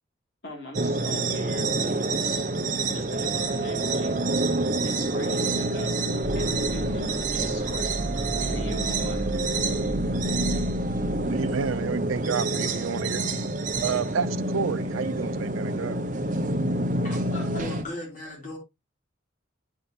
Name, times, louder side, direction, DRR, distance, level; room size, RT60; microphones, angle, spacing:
voice 1, 0.4-1.7 2.7-4.4 4.8-8.0 8.4-9.2, equal, 55° left, 2.6 m, -40 dB
sound 1, 0.7-17.8, right 2 dB, 40° right, 0.7 m, -27 dB
sound 2, 6.2-12.2, right 1 dB, 75° left, 4.0 m, -35 dB
voice 2, 11.3-13.2 13.8-16.0, right 6 dB, 85° right, 0.5 m, -30 dB
voice 3, 17.0-18.6, left 1 dB, 40° left, 3.2 m, -37 dB
8.9 x 4.9 x 2.8 m
head